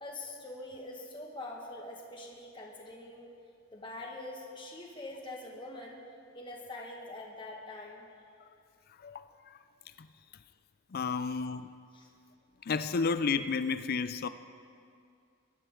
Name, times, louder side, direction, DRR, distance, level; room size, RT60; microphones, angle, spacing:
voice 1, 0.0-3.3 3.7-6.0 6.3-8.1 11.9-12.1, left 2 dB, 20° left, -1 dB, 1.8 m, -44 dB
voice 2, 9.0-9.6 10.0-10.1 10.9-11.7 12.6-14.3, left 5 dB, 45° left, 12 dB, 0.4 m, -32 dB
22.0 x 12.5 x 3.8 m, 2.4 s
head